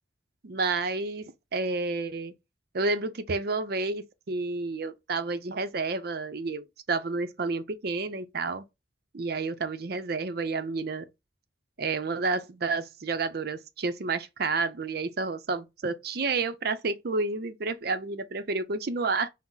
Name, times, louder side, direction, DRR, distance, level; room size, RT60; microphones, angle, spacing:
voice 1, 0.4-2.3 2.7-8.7 9.1-11.0 11.8-19.3, right 3 dB, 55° right, 0.5 m, -30 dB
6.0 x 2.0 x 3.9 m
head